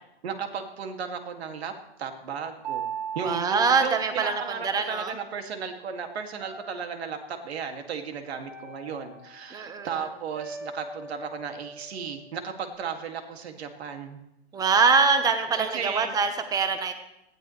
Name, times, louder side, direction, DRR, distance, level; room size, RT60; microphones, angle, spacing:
voice 1, 0.2-1.7 2.0-2.9 3.1-14.2 15.6-16.1, right 6 dB, 70° right, 5 dB, 2.4 m, -35 dB
sound 1, 2.6-5.0 6.4-7.4 8.4-9.7 10.3-12.7, right 6 dB, 55° right, 5.5 m, -40 dB
voice 2, 3.2-5.1 9.5-9.9 14.5-16.9, right 5 dB, 10° right, 8 dB, 1.1 m, -24 dB
19.0 x 15.0 x 3.3 m, 0.86 s
hypercardioid pair, 150°, 33 cm